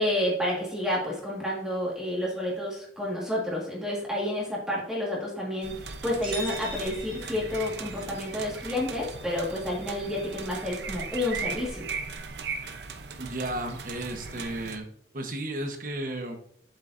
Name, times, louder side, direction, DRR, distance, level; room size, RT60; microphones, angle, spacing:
voice 1, 0.0-5.7 6.0-11.9, left 1 dB, 5° right, -4 dB, 1.7 m, -30 dB
sound 1, 5.6-14.8, right 5 dB, 70° right, 0.7 m, -38 dB
sound 2, 6.2-8.0, right 2 dB, 30° right, 2.8 m, -40 dB
voice 2, 13.2-14.9 15.1-16.4, right 1 dB, 50° right, 5 dB, 1.1 m, -33 dB
7.6 x 7.3 x 2.6 m, 0.63 s
head